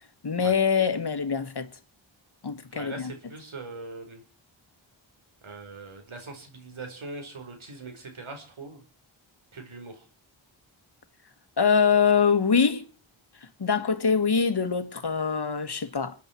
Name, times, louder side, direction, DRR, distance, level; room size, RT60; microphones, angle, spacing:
voice 1, 0.2-1.7 2.4-3.1 11.6-12.9 13.6-16.1, left 6 dB, 55° left, 1.7 m, -24 dB
voice 2, 2.7-4.2 5.4-8.8 9.5-10.1, right 3 dB, 80° right, 4.9 m, -41 dB
28.5 x 10.0 x 4.5 m
wide cardioid pair, 70°, 48 cm